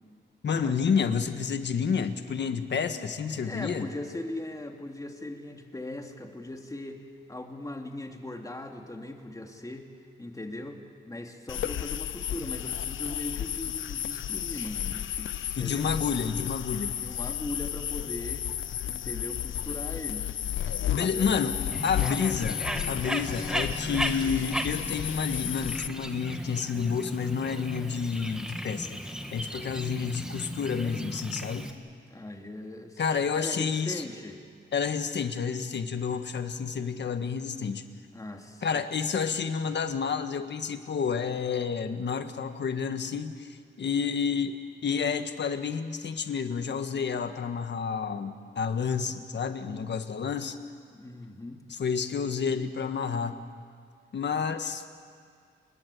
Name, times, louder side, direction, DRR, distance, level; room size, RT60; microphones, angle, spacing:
voice 1, 0.4-3.9 15.6-17.0 20.9-31.7 33.0-34.0 34.7-37.8 38.6-44.6 44.8-50.6 51.7-53.3 54.1-55.1, left 6 dB, 65° left, 8 dB, 1.7 m, -30 dB
voice 2, 3.3-7.0 7.3-9.9 10.2-16.0 17.0-18.5 18.9-20.3 20.8-21.3 32.1-33.0 33.4-34.4 38.1-38.8 50.9-51.6, left 1 dB, 15° left, 3 dB, 2.7 m, -39 dB
sound 1, 11.5-25.9, left 10 dB, 80° left, 0.7 m, -33 dB
Bird, 21.7-31.7, equal, 5° right, 1.8 m, -36 dB
29.5 x 20.5 x 8.5 m, 2.1 s
cardioid pair, 100°, 20 cm